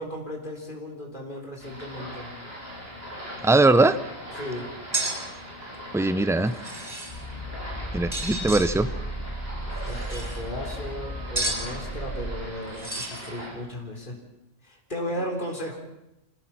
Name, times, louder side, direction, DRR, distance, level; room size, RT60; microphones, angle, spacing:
voice 1, 0.0-2.3 4.4-4.7 9.9-14.2 14.6-15.8, equal, 40° left, 0 dB, 4.0 m, -35 dB
sound 1, 1.6-13.5, equal, 50° right, 8.2 m, -40 dB
voice 2, 3.4-4.0 5.9-6.5 7.9-8.9, right 2 dB, 5° right, 12 dB, 0.4 m, -20 dB
sound 2, 4.9-5.1 6.5-7.2 8.1-8.7 9.8-10.4 11.4-11.6 12.8-13.3, right 2 dB, 35° right, 4.0 m, -31 dB
sound 3, 7.1-12.4, right 1 dB, 25° left, 7.4 m, -35 dB
27.0 x 17.0 x 5.9 m, 0.88 s
omnidirectional pair, 1.3 m